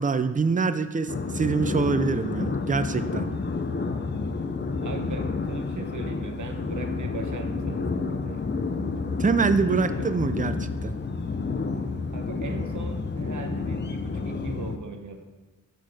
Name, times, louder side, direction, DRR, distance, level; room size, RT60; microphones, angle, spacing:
voice 1, 0.0-3.3 9.2-10.6 10.8-11.0, right 4 dB, 25° right, 11 dB, 0.4 m, -25 dB
sound 1, 1.1-14.8, left 4 dB, 30° left, 0.5 m, -30 dB
voice 2, 4.8-8.4 10.0-10.1 12.1-15.2, right 4 dB, 60° right, 5 dB, 0.9 m, -39 dB
6.5 x 6.2 x 4.8 m, 1.3 s
wide cardioid pair, 85°, 34 cm